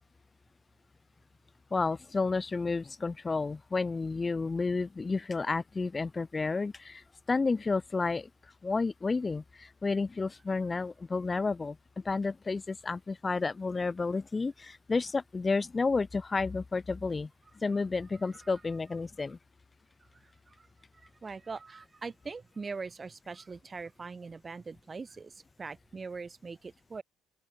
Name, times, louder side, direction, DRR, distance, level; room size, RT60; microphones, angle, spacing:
voice 1, 1.7-8.3 8.6-11.8 12.0-17.3 17.6-19.4, left 4 dB, 20° left, 1.3 m, -31 dB
voice 2, 21.0-27.0, right 4 dB, 25° right, 3.5 m, -42 dB
open air
cardioid pair, 105°, 0 cm